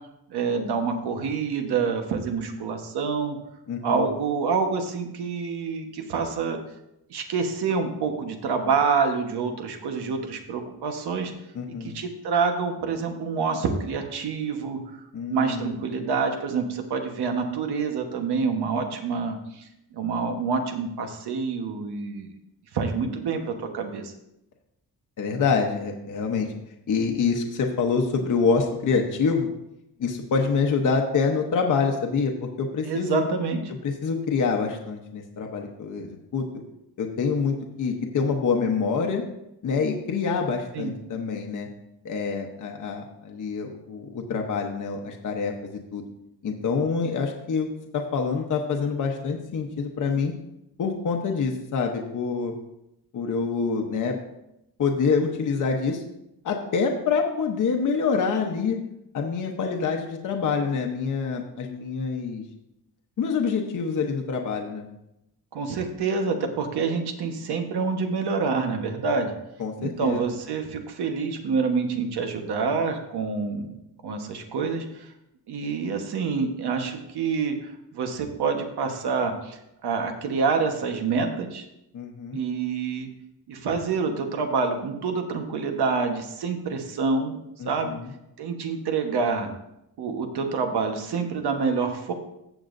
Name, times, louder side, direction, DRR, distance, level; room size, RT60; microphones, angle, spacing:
voice 1, 0.3-3.4 3.8-6.6 7.1-11.3 11.8-14.8 15.3-19.6 19.9-22.3 22.7-24.1 32.8-33.6 40.7-40.9 65.5-69.3 69.8-73.8 74.0-75.1 75.5-81.6 82.3-83.1 83.5-87.3 87.6-87.9 88.4-89.5 90.0-92.1, right 5 dB, 90° right, 5 dB, 1.3 m, -27 dB
voice 2, 3.7-4.1 11.5-12.0 15.1-15.7 25.2-26.5 26.9-29.5 30.0-33.2 33.8-36.5 37.0-39.2 39.6-41.7 42.0-46.0 46.4-47.7 47.9-50.3 50.8-52.5 53.1-54.2 54.8-56.0 56.4-58.8 59.1-62.4 63.2-64.9 69.6-70.2 81.9-82.4 87.6-88.1, left 5 dB, 50° left, 2 dB, 1.0 m, -26 dB
15.0 x 7.1 x 2.6 m, 0.85 s
wide cardioid pair, 160°, 38 cm